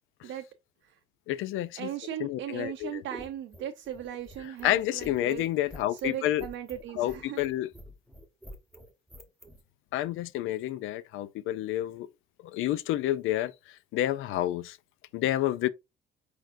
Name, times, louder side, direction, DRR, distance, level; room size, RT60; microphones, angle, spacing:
voice 1, 1.3-1.9 2.2-3.0 4.4-6.5 7.0-7.7 9.9-12.1 12.5-13.5 13.9-14.8 15.1-15.7, left 14 dB, 90° left, 0.4 m, -29 dB
voice 2, 1.8-5.4 5.9-7.4, right 10 dB, 75° right, 0.6 m, -37 dB
sound 1, 2.7-9.6, equal, ahead, 1.0 m, -49 dB
4.6 x 4.4 x 2.5 m
cardioid pair, 90°, 20 cm